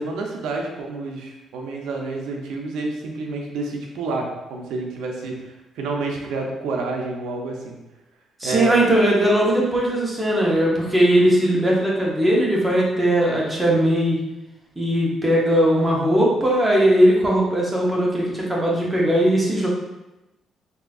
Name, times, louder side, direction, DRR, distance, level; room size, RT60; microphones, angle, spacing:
voice 1, 0.0-7.8 8.4-8.7, right 3 dB, 85° right, 1 dB, 0.5 m, -29 dB
voice 2, 8.4-14.2 14.8-19.7, right 1 dB, 10° right, -4 dB, 0.9 m, -19 dB
3.6 x 2.7 x 2.4 m, 0.98 s
cardioid pair, 90°, 0 cm